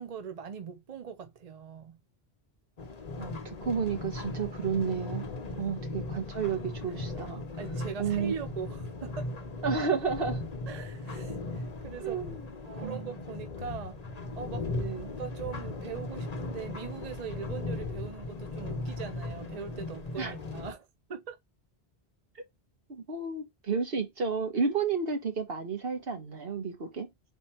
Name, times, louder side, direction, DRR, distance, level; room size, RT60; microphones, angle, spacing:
voice 1, 0.0-2.0 5.5-5.8 7.6-9.3 10.7-12.2 12.7-21.4, right 6 dB, 45° right, 0.6 m, -41 dB
sound 1, 2.8-20.7, left 2 dB, 40° left, 0.9 m, -38 dB
voice 2, 3.2-5.3 5.6-7.4 8.0-8.3 9.6-10.4 12.0-12.4 12.6-13.0 14.8-15.1 20.2-20.3 22.9-27.1, right 5 dB, 65° right, 1.4 m, -31 dB
4.1 x 2.8 x 4.4 m
omnidirectional pair, 1.1 m